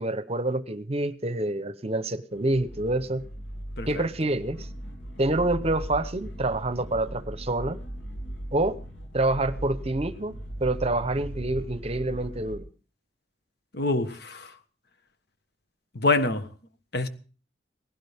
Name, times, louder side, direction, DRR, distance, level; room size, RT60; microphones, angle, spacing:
voice 1, 0.0-3.2 3.9-4.7 5.2-7.8 8.5-8.8 9.1-10.4 10.6-12.6, right 2 dB, 35° right, 0.9 m, -27 dB
sound 1, 2.3-12.6, equal, 80° left, 3.0 m, -38 dB
voice 2, 13.7-14.5 15.9-16.5 16.9-17.1, left 3 dB, 65° left, 1.4 m, -25 dB
19.0 x 16.5 x 3.5 m
head